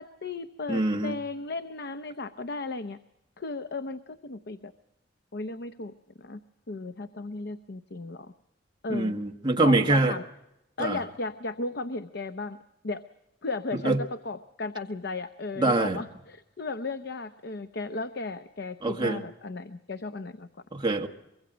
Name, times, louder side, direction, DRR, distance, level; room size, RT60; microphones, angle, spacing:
voice 1, 0.0-3.0 3.4-4.7 5.3-6.4 6.7-8.3 8.8-9.1 9.6-10.2 10.8-12.6 12.8-13.0 13.4-20.5, left 3 dB, 65° left, 10 dB, 0.7 m, -35 dB
voice 2, 0.7-1.1 8.9-10.2 10.8-11.0 13.8-14.0 15.6-16.0 18.8-19.2 20.7-21.1, right 2 dB, 25° right, 2 dB, 1.5 m, -24 dB
24.5 x 22.0 x 5.0 m, 0.91 s
head